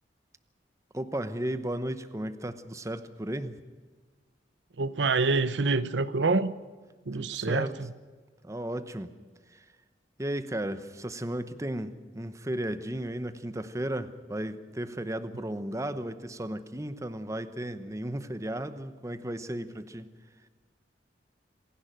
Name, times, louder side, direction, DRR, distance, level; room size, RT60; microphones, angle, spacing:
voice 1, 0.9-3.6 7.2-7.7 8.4-9.1 9.5-9.6 10.2-20.1, right 1 dB, 15° right, 11 dB, 0.9 m, -34 dB
voice 2, 4.8-6.5 7.1-7.9, right 3 dB, 80° right, 15 dB, 0.8 m, -26 dB
26.5 x 11.5 x 9.1 m, 1.5 s
head